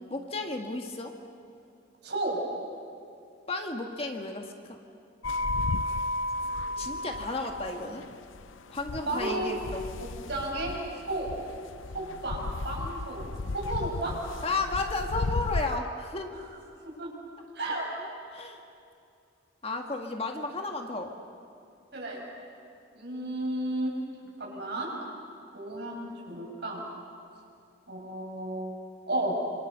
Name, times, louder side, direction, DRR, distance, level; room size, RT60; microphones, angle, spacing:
voice 1, 0.1-1.1 3.5-4.8 6.8-8.0 8.7-9.8 14.4-16.4 18.0-18.6 19.6-21.1, left 3 dB, 30° left, 3 dB, 1.7 m, -33 dB
voice 2, 2.0-2.4 9.1-9.5 10.0-10.8 11.1-11.3 11.9-13.3 13.5-14.1 16.3-16.4 16.8-17.1 17.5-17.9 21.9-22.2 22.9-24.0 24.4-24.9 25.5-26.8 27.9-28.7 29.1-29.4, right 1 dB, 60° right, -1 dB, 6.9 m, -33 dB
sound 1, 5.2-15.8, left 2 dB, 85° left, 0.6 m, -34 dB
26.5 x 26.5 x 6.8 m, 2.5 s
head